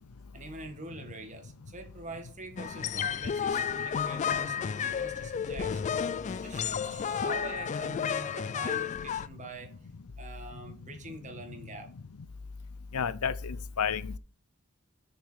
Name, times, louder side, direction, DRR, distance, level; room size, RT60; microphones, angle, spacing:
voice 1, 0.3-5.8 6.4-9.8 10.2-11.9, right 2 dB, 35° right, 1.7 m, -44 dB
sound 1, 2.6-9.3, left 7 dB, 35° left, 0.3 m, -32 dB
voice 2, 12.9-14.2, left 7 dB, 85° left, 0.6 m, -31 dB
6.5 x 5.0 x 6.3 m
head